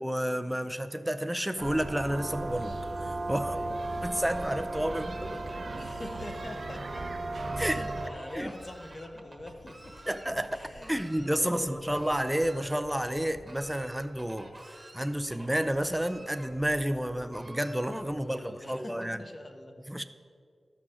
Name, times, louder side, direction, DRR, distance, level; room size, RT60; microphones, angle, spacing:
voice 1, 0.0-2.7 3.0-3.6 4.0-5.4 7.6-7.8 8.3-8.5 10.1-10.5 10.9-14.5 14.9-19.2 19.9-20.0, equal, 5° right, 10 dB, 0.5 m, -30 dB
sound 1, 1.6-8.1, right 2 dB, 55° right, 0.7 m, -35 dB
voice 2, 3.4-3.8 5.8-7.3 7.6-10.2 10.5-12.0 18.1-19.8, left 1 dB, 25° left, 6 dB, 0.9 m, -44 dB
Fowl, 3.6-18.4, right 1 dB, 20° right, 1.2 m, -51 dB
sound 2, 6.7-14.3, left 1 dB, 40° left, 2.9 m, -54 dB
13.5 x 6.1 x 6.3 m, 2.2 s
wide cardioid pair, 130°, 0 cm